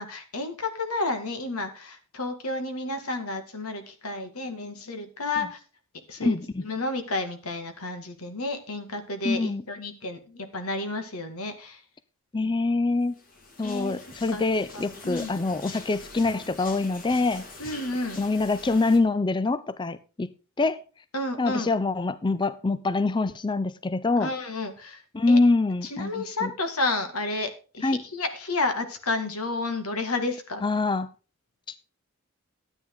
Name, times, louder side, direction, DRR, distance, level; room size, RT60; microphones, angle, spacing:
voice 1, 0.0-5.6 6.1-11.8 12.4-12.5 13.6-13.9 14.3-14.5 14.7-15.3 17.6-18.2 21.1-21.7 24.2-25.0 25.3-25.4 25.8-30.6, left 2 dB, 85° left, 2.2 m, -31 dB
voice 2, 6.2-6.6 9.2-9.6 12.3-13.2 13.6-17.4 18.2-20.3 20.6-20.8 21.4-24.3 25.1-26.5 27.8-28.0 30.6-31.1 31.7-31.8, left 3 dB, 20° left, 0.4 m, -25 dB
sound 1, 13.1-19.0, left 3 dB, 40° left, 2.3 m, -44 dB
13.0 x 9.0 x 3.8 m
head